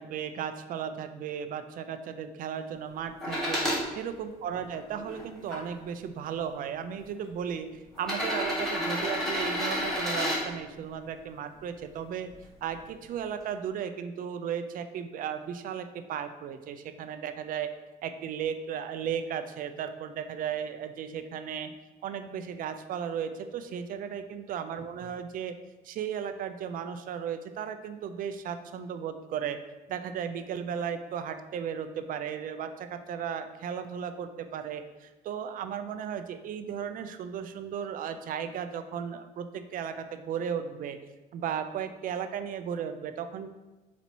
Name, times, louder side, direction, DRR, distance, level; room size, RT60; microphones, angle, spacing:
voice 1, 0.0-3.6 4.0-7.7 8.0-12.3 12.6-17.7 18.0-21.7 22.0-25.5 25.8-29.6 29.9-41.0 41.3-43.5, right 8 dB, 55° right, 9 dB, 0.4 m, -35 dB
sound 1, 3.2-3.8 4.5-5.6 6.6-6.7 7.9-10.4 12.3-12.4, equal, ahead, 1.4 m, -30 dB
4.0 x 2.8 x 4.5 m, 1.1 s
cardioid pair, 110°, 17 cm